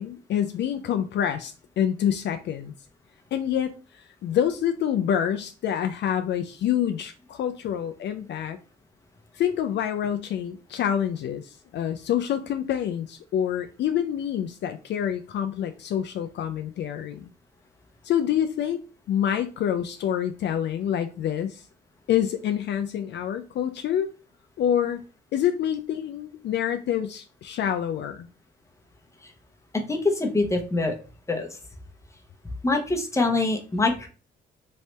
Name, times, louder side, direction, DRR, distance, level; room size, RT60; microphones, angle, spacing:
voice 1, 0.0-2.7 3.3-3.7 4.2-8.6 9.3-17.3 18.0-18.8 19.1-21.6 22.1-24.1 24.6-25.0 25.3-28.3, left 9 dB, 65° left, 0.4 m, -27 dB
voice 2, 29.7-31.0 31.3-31.6 32.6-34.1, left 3 dB, 15° left, 0.9 m, -24 dB
3.2 x 2.7 x 3.2 m
cardioid pair, 90°, 20 cm